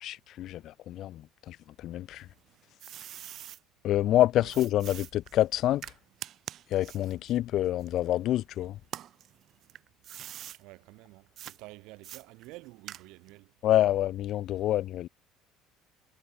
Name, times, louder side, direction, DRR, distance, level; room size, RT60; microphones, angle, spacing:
voice 1, 0.0-1.6 1.8-2.3 3.8-5.9 6.7-8.8 13.6-15.1, left 13 dB, 55° left, 0.4 m, -27 dB
sound 1, 2.2-3.6 4.5-8.4 8.8-10.6 11.4-11.6 12.0-13.4, right 11 dB, 50° right, 0.4 m, -44 dB
voice 2, 10.5-13.7 14.6-14.7, right 22 dB, 75° right, 4.1 m, -50 dB
cardioid pair, 130°, 0 cm